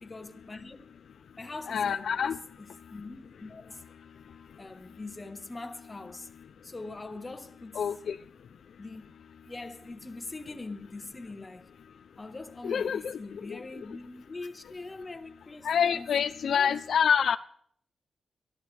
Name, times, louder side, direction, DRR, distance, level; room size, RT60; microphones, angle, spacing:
voice 1, 0.0-0.8 1.4-2.3 2.6-6.3 6.6-7.8 8.8-9.0 9.4-11.7 12.2-16.7, left 3 dB, 25° left, 1.2 m, -43 dB
voice 2, 1.7-2.4 7.7-8.2 12.6-13.2 13.5-13.6 15.6-17.4, left 7 dB, 75° left, 0.5 m, -26 dB
22.5 x 13.0 x 3.3 m
wide cardioid pair, 135°, 0 cm